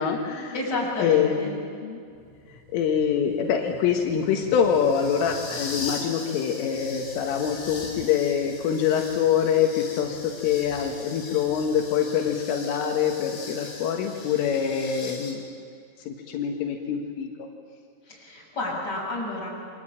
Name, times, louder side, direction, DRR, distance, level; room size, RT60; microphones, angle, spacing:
voice 1, 0.0-0.5 1.0-1.4 1.8-2.0 2.7-15.5 16.1-17.5, left 8 dB, 80° left, 2 dB, 4.0 m, -25 dB
voice 2, 0.5-1.5 18.1-19.5, left 2 dB, 20° left, -2 dB, 6.9 m, -30 dB
sound 1, 2.2-15.3, left 3 dB, 60° left, 6.7 m, -40 dB
28.5 x 23.0 x 8.9 m, 2.3 s
omnidirectional pair, 5.8 m